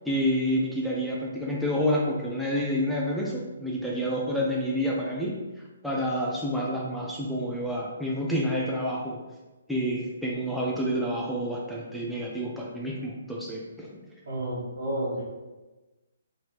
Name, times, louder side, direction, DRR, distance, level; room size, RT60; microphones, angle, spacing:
voice 1, 0.1-5.4 5.8-9.2 9.7-14.0, equal, ahead, -4 dB, 0.3 m, -28 dB
voice 2, 14.3-15.2, right 1 dB, 65° right, -5 dB, 1.2 m, -30 dB
3.1 x 3.0 x 2.8 m, 1.2 s
hypercardioid pair, 160°, 0 cm